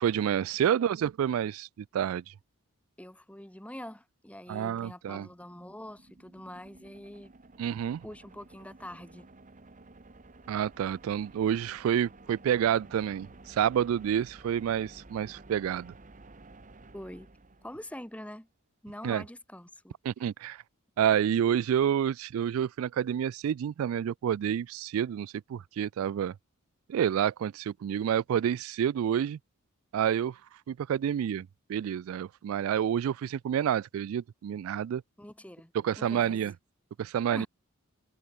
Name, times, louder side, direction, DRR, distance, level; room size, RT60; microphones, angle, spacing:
voice 1, 0.0-1.7 1.9-2.3 4.5-5.3 7.6-8.0 10.5-15.9 19.0-19.2 20.0-20.6 21.0-26.3 26.9-29.4 29.9-30.4 30.7-35.0 35.7-36.5 37.0-37.5, right 9 dB, 75° right, 0.3 m, -29 dB
voice 2, 3.0-7.3 8.0-9.3 16.9-17.3 17.6-18.5 18.8-20.3 35.2-36.4 37.3-37.5, left 1 dB, 5° left, 1.4 m, -45 dB
sound 1, 5.0-18.2, right 2 dB, 35° right, 1.2 m, -53 dB
head